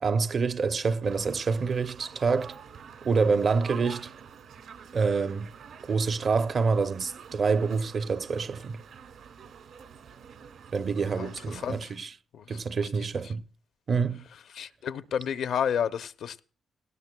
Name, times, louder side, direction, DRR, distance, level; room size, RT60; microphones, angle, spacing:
voice 1, 0.0-2.6 3.0-4.1 4.9-5.5 5.9-8.8 10.7-12.1 12.5-13.5 13.9-14.2, right 5 dB, 45° right, 0.6 m, -27 dB
sound 1, 1.0-11.8, right 7 dB, 70° right, 2.0 m, -47 dB
voice 2, 11.1-11.9 12.3-12.9 14.5-16.4, left 8 dB, 65° left, 0.6 m, -31 dB
18.0 x 17.5 x 2.2 m
cardioid pair, 90°, 0 cm